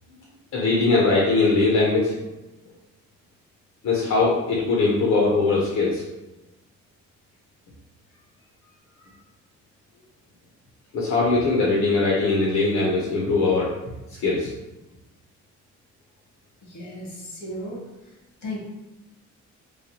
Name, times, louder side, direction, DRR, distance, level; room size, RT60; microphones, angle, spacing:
voice 1, 0.5-2.2 3.8-6.0 10.9-13.7 14.2-14.5, left 3 dB, 65° left, -4 dB, 0.7 m, -21 dB
voice 2, 16.7-17.8 18.4-18.6, left 1 dB, 85° left, -3 dB, 1.2 m, -34 dB
3.2 x 2.3 x 2.7 m, 0.98 s
cardioid pair, 90°, 30 cm